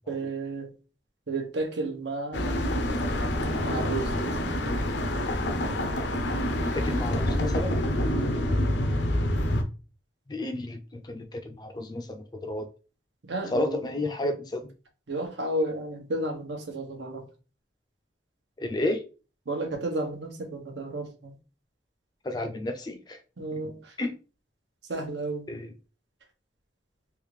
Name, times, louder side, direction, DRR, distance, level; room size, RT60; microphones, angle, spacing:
voice 1, 0.1-0.7 1.3-2.5 3.6-4.4 8.1-8.5 13.2-13.9 15.1-17.2 19.5-21.3 23.4-23.9 24.9-25.5, right 2 dB, 80° right, 0.9 m, -32 dB
sound 1, 2.3-9.6, left 1 dB, 75° left, 0.6 m, -27 dB
voice 2, 6.7-7.8 10.3-12.7 13.5-14.7 18.6-19.0 22.2-23.2 24.0-24.1 25.5-25.7, left 2 dB, 20° left, 0.4 m, -31 dB
3.4 x 2.5 x 3.2 m
head